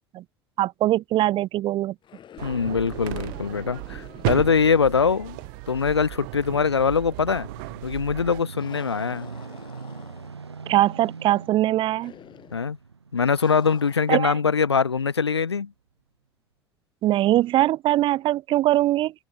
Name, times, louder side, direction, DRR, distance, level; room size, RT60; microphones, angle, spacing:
voice 1, 0.6-1.9 10.7-12.1 14.1-14.3 17.0-19.1, right 14 dB, 40° right, 0.5 m, -22 dB
sound 1, 2.0-6.2 6.4-6.5 8.6-10.6 12.0-12.7 13.4-14.2, left 9 dB, 35° left, 6.6 m, -47 dB
voice 2, 2.4-5.4 5.7-7.5 7.8-9.3 12.5-12.8 13.1-15.7, left 5 dB, 80° left, 0.8 m, -23 dB
sound 2, 2.4-8.4, right 32 dB, 55° right, 2.7 m, -34 dB
sound 3, 6.7-15.0 15.6-15.7, right 5 dB, 80° right, 1.8 m, -42 dB
figure-of-eight pair, 70°, 14 cm